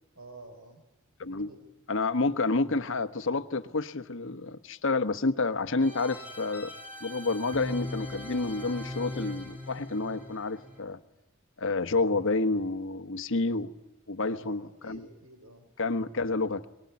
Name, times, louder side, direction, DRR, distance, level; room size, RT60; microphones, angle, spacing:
voice 1, 0.1-0.8 1.2-1.6 14.2-15.7, right 1 dB, 90° right, 4.4 m, -50 dB
voice 2, 1.9-6.7 7.0-11.0 11.6-13.7 14.1-15.1 15.8-16.7, left 3 dB, 65° left, 1.2 m, -29 dB
sound 1, 5.8-10.8, left 1 dB, 5° right, 6.5 m, -40 dB
23.5 x 21.5 x 9.6 m
head